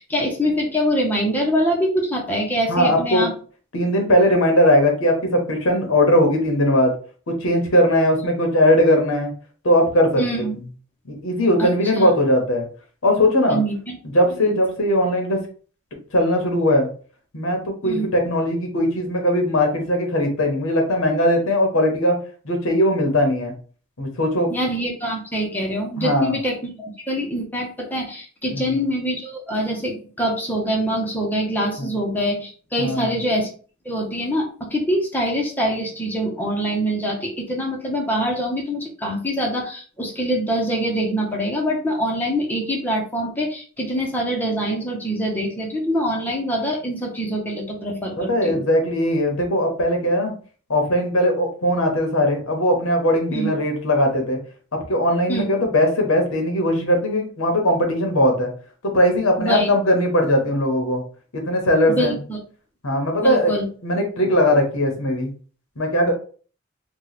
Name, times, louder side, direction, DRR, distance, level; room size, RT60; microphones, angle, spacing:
voice 1, 0.0-3.3 10.2-10.5 11.6-11.7 12.0-12.1 13.5-14.0 14.4-14.6 17.8-18.1 24.5-33.5 33.8-48.6 53.3-53.5 55.3-55.4 59.4-59.7 61.9-62.4 63.2-63.6, equal, 10° left, -1 dB, 0.8 m, -24 dB
voice 2, 2.7-3.3 3.7-6.9 7.3-9.3 9.6-10.5 11.2-12.7 13.0-13.6 14.1-15.4 16.1-16.9 17.3-22.2 22.4-23.5 24.0-24.5 26.0-26.3 28.5-28.8 31.8-31.9 32.8-33.1 48.2-50.3 50.7-54.4 54.9-58.5 58.8-61.0 61.3-62.2 62.8-63.5 63.8-65.3 65.8-66.1, left 1 dB, 75° left, 3 dB, 1.0 m, -19 dB
2.9 x 2.3 x 4.0 m, 0.41 s
head